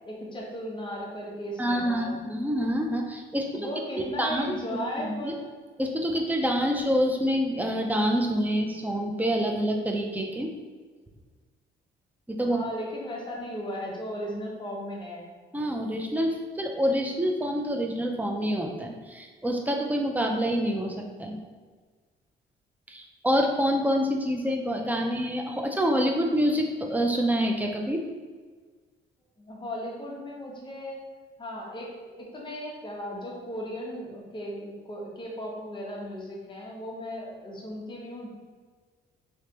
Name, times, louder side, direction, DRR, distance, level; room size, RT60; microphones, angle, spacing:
voice 1, 0.1-2.2 3.5-5.4 12.4-15.3 29.4-31.0 31.4-38.3, equal, 25° left, -3 dB, 1.0 m, -36 dB
voice 2, 1.6-3.7 3.9-4.6 5.0-5.3 5.8-10.5 12.3-12.6 15.5-21.4 22.9-28.0, equal, 10° right, 2 dB, 0.5 m, -27 dB
3.3 x 3.1 x 2.9 m, 1.5 s
cardioid pair, 90°, 20 cm